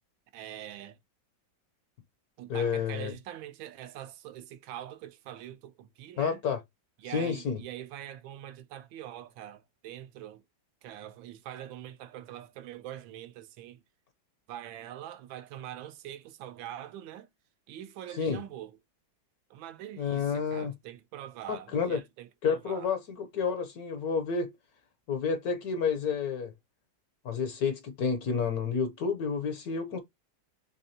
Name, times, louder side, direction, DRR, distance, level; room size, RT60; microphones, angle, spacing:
voice 1, 0.3-1.0 2.4-6.4 7.0-10.4 10.8-13.8 14.5-17.3 17.7-18.8 19.5-22.9, right 12 dB, 80° right, 1.4 m, -44 dB
voice 2, 2.5-3.1 6.2-6.6 7.1-7.6 18.1-18.4 20.0-20.7 21.5-22.0 22.4-24.5 25.1-26.5 27.2-30.0, left 6 dB, 70° left, 0.9 m, -30 dB
4.0 x 3.3 x 2.7 m
omnidirectional pair, 2.1 m